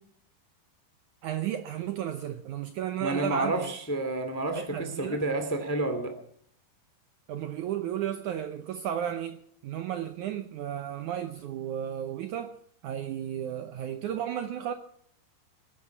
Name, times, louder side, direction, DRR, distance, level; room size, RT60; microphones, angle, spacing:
voice 1, 1.2-3.7 4.6-5.2 7.3-12.6 12.8-14.7, right 10 dB, 85° right, 1.7 m, -33 dB
voice 2, 3.0-6.1, right 2 dB, 25° left, 0.3 m, -30 dB
20.0 x 11.0 x 6.0 m
omnidirectional pair, 4.7 m